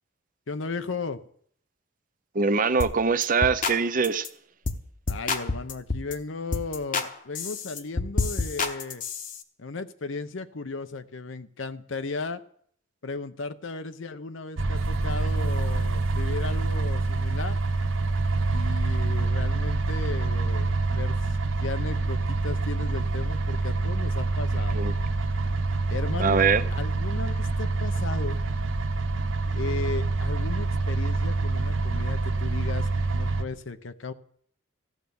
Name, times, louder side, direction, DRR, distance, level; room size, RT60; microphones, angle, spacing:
voice 1, 0.5-1.2 5.1-9.0 9.6-12.4 13.0-17.6 18.5-21.2 21.6-24.8 25.9-26.4 26.7-28.4 29.5-34.1, left 3 dB, 75° left, 0.8 m, -35 dB
voice 2, 2.3-4.3 24.7-25.0 26.2-26.6, right 5 dB, 45° right, 0.7 m, -23 dB
sound 1, 2.8-3.0 3.2-3.8 4.0-4.3 4.6-4.8 5.1-6.1 6.5-7.1 7.3-9.4, left 3 dB, 45° left, 1.0 m, -29 dB
sound 2, 14.6-33.4, right 2 dB, 80° right, 0.9 m, -26 dB
14.5 x 9.2 x 7.0 m
head